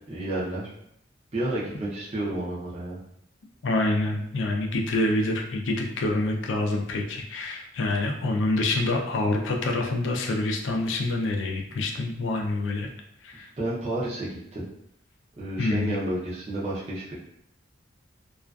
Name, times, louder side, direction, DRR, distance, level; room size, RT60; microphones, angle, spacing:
voice 1, 0.1-0.7 1.3-3.0 13.6-14.7 15.4-17.1, right 1 dB, 30° right, -7 dB, 0.5 m, -31 dB
voice 2, 3.6-12.9 13.2-13.5 15.6-16.0, left 2 dB, 75° left, 2 dB, 0.4 m, -26 dB
2.3 x 2.3 x 2.3 m, 0.73 s
head